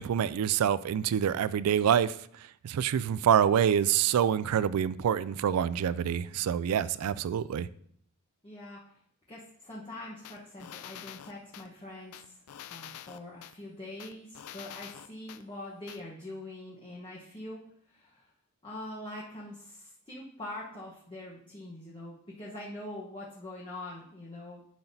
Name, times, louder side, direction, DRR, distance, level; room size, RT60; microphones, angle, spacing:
voice 1, 0.0-2.1 2.6-7.7, right 9 dB, 80° right, 17 dB, 0.3 m, -26 dB
voice 2, 8.4-8.8 9.3-12.4 12.7-18.3 18.6-24.6, left 1 dB, 25° left, -5 dB, 1.1 m, -44 dB
sound 1, 10.2-11.7 12.1-13.5 14.0-15.4 15.9-16.0, left 10 dB, 80° left, 0.4 m, -46 dB
10.5 x 5.9 x 2.7 m, 0.64 s
head